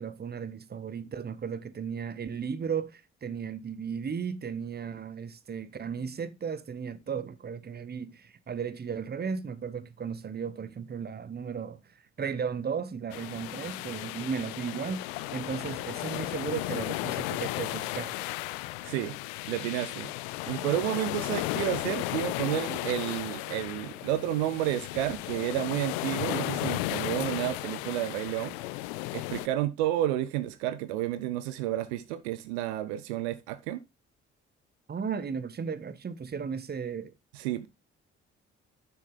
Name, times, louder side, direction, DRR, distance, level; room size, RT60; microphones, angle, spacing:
voice 1, 0.0-11.8 12.2-18.1 34.9-37.1, right 6 dB, 30° right, 0.8 m, -35 dB
sound 1, 13.1-29.5, left 19 dB, 70° left, 0.5 m, -35 dB
voice 2, 18.8-19.2 19.5-20.1 20.5-28.6 29.1-33.8 37.3-37.7, right 13 dB, 75° right, 0.6 m, -31 dB
7.0 x 6.6 x 3.7 m
figure-of-eight pair, 40°, 33 cm